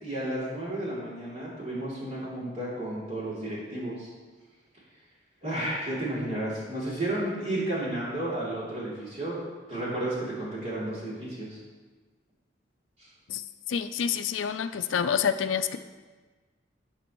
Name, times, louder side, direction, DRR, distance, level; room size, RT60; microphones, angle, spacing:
voice 1, 0.0-4.1 5.4-9.4 9.7-11.6 13.0-13.1, right 1 dB, 35° right, -7 dB, 2.8 m, -32 dB
voice 2, 13.3-15.8, left 7 dB, 90° left, 10 dB, 0.4 m, -28 dB
15.0 x 5.2 x 3.0 m, 1.3 s
head